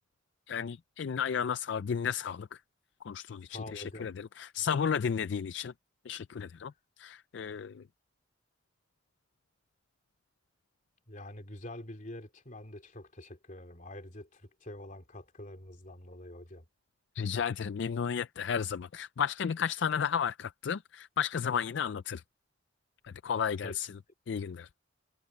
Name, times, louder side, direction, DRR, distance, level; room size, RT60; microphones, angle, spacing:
voice 1, 0.5-2.6 3.0-5.7 6.1-6.7 7.0-7.8 17.2-22.2 23.0-24.0 24.3-24.7, left 7 dB, 65° left, 0.4 m, -33 dB
voice 2, 3.5-4.1 11.1-16.6 23.6-23.8, left 1 dB, 40° left, 3.2 m, -46 dB
head